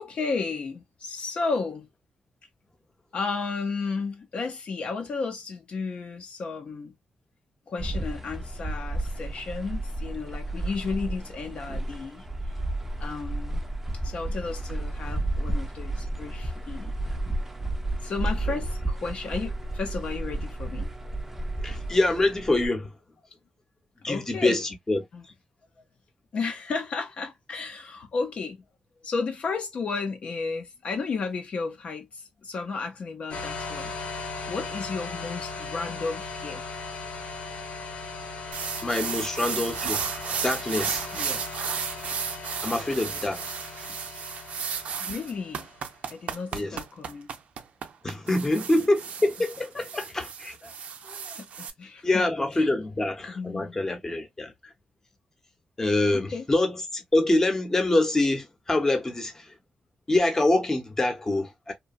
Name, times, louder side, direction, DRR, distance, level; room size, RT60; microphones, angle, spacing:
voice 1, 0.0-1.9 3.1-6.9 7.7-12.2 13.0-13.6 14.0-16.9 18.0-20.9 24.0-24.6 25.1-25.2 26.3-28.6 29.0-34.0 34.5-36.6 41.1-41.4 45.0-45.7 46.1-47.3 51.4-52.2 52.5-52.7 53.3-53.8 56.1-56.5, left 4 dB, 55° left, 0.5 m, -33 dB
sound 1, 7.8-22.7, right 1 dB, 10° right, 0.4 m, -32 dB
voice 2, 21.6-22.9 24.0-25.0 38.8-40.0 40.4-41.0 42.6-43.5 46.5-46.8 48.0-50.7 51.1-51.2 52.0-54.7 55.8-59.5 60.1-61.7, left 2 dB, 20° left, 0.7 m, -25 dB
sound 2, 33.3-45.9, left 3 dB, 85° left, 1.0 m, -38 dB
sound 3, 38.5-51.7, right 7 dB, 75° right, 0.4 m, -34 dB
2.8 x 2.1 x 2.4 m
wide cardioid pair, 130°, 2 cm